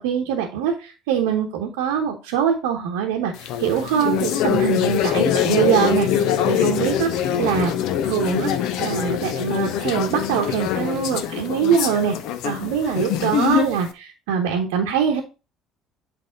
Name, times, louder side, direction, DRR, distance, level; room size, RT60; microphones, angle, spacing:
voice 1, 0.0-7.1 7.4-7.7 8.0-8.5 8.8-12.1 12.4-15.2, right 8 dB, 70° right, 0 dB, 0.9 m, -23 dB
sound 1, 3.4-13.9, left 9 dB, 65° left, 0.6 m, -23 dB
8.4 x 3.4 x 3.7 m, 0.30 s
figure-of-eight pair, 55°, 0 cm